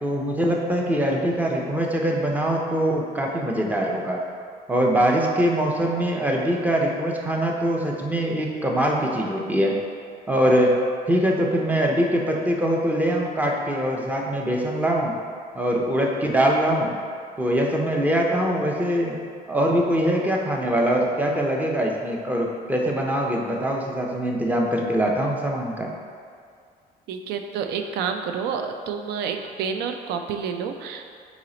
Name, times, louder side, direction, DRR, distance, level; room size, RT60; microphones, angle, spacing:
voice 1, 0.0-4.2 4.7-9.8 10.3-10.8 11.1-15.1 15.5-16.9 17.4-19.1 19.5-25.9, equal, 10° right, -1 dB, 0.5 m, -23 dB
voice 2, 27.1-31.1, right 6 dB, 75° right, 6 dB, 0.4 m, -29 dB
4.0 x 3.0 x 3.8 m, 2.2 s
cardioid pair, 110°, 17 cm